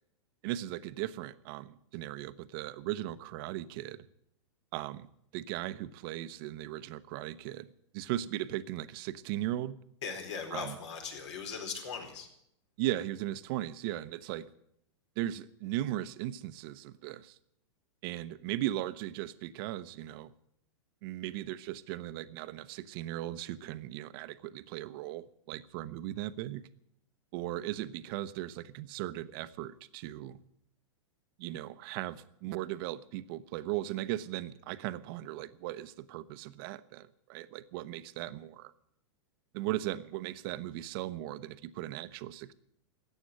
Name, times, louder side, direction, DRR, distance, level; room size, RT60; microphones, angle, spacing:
voice 1, 0.4-4.1 4.7-7.7 7.9-9.8 10.5-10.7 12.8-14.5 15.2-17.4 18.0-20.3 21.0-26.7 27.3-30.4 31.4-38.7 39.5-42.5, right 14 dB, 50° right, 14 dB, 0.9 m, -37 dB
voice 2, 10.0-12.3, left 6 dB, 70° left, 3 dB, 4.3 m, -39 dB
14.0 x 9.1 x 9.8 m, 0.75 s
hypercardioid pair, 125°, 15 cm